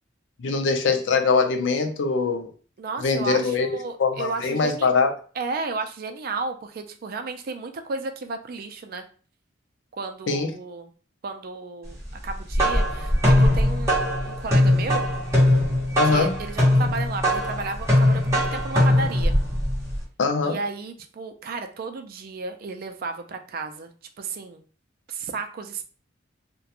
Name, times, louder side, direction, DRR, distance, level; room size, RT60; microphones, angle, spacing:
voice 1, 0.4-2.5 3.0-5.1 10.3-10.5 16.0-16.4 20.2-20.6, left 4 dB, 70° left, 4 dB, 0.4 m, -22 dB
voice 2, 2.8-4.9 5.3-9.0 9.9-10.9 11.2-15.1 16.1-19.3 20.4-24.6 25.1-25.8, right 4 dB, 50° right, 6 dB, 0.4 m, -33 dB
sound 1, 12.3-20.0, left 1 dB, 15° right, 1.0 m, -21 dB
2.4 x 2.2 x 2.8 m, 0.40 s
head